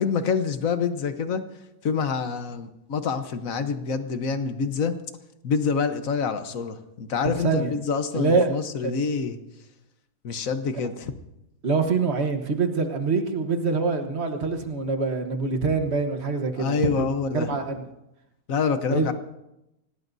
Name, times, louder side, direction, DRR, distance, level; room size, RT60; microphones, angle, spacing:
voice 1, 0.0-1.4 1.8-4.9 5.4-9.4 10.2-11.1 16.6-17.6 18.5-19.1, left 5 dB, 55° left, 9 dB, 1.3 m, -26 dB
voice 2, 8.1-8.5 8.8-8.9 10.7-10.9 11.6-17.1 17.3-17.9 18.9-19.1, right 4 dB, 40° right, 6 dB, 1.4 m, -25 dB
26.0 x 18.0 x 2.7 m, 0.89 s
omnidirectional pair, 1.9 m